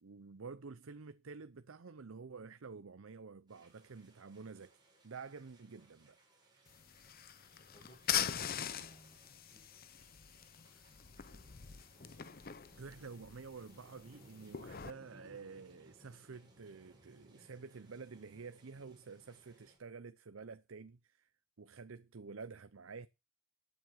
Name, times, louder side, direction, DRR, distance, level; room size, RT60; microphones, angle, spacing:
voice 1, 0.0-6.2 10.7-10.8 12.7-21.3 21.6-23.1, right 4 dB, 70° right, 0.6 m, -50 dB
sound 1, 3.5-19.8, right 1 dB, 20° right, 6.4 m, -65 dB
sound 2, 6.7-14.9, left 9 dB, 45° left, 0.7 m, -42 dB
voice 2, 7.7-9.8, equal, 25° left, 6.4 m, -62 dB
12.5 x 7.6 x 5.8 m
head